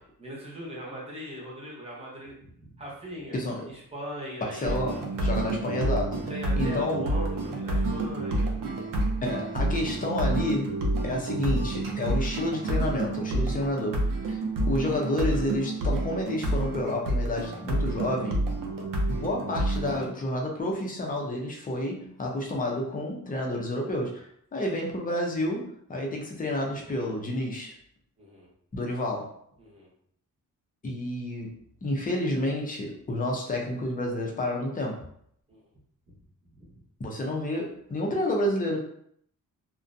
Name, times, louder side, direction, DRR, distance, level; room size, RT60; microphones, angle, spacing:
voice 1, 0.2-3.4 3.6-5.0 6.3-8.6 14.3-14.4 28.2-28.5 29.6-29.9 35.5-35.6 36.5-36.6, equal, 20° right, -4 dB, 0.7 m, -40 dB
voice 2, 3.3-3.7 4.4-6.3 6.6-7.1 9.2-10.8 11.0-14.4 14.7-18.4 19.1-24.3 24.5-27.8 28.7-29.4 30.8-35.0 37.0-38.8, left 1 dB, 25° left, 0 dB, 0.5 m, -30 dB
sound 1, 4.6-20.1, right 1 dB, 75° right, 0.6 m, -29 dB
2.5 x 2.1 x 2.5 m, 0.67 s
wide cardioid pair, 145°, 34 cm